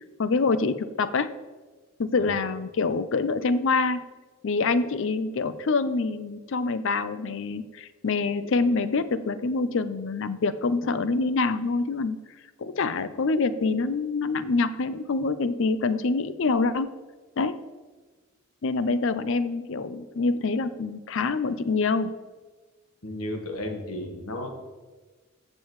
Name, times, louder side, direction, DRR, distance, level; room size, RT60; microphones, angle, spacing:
voice 1, 0.2-1.3 2.0-4.0 4.4-12.2 12.6-16.9 17.4-17.6 18.6-22.1, left 3 dB, 60° left, 13 dB, 0.5 m, -26 dB
voice 2, 23.0-24.5, left 1 dB, 90° left, 4 dB, 1.4 m, -33 dB
14.5 x 7.6 x 3.1 m, 1.3 s
head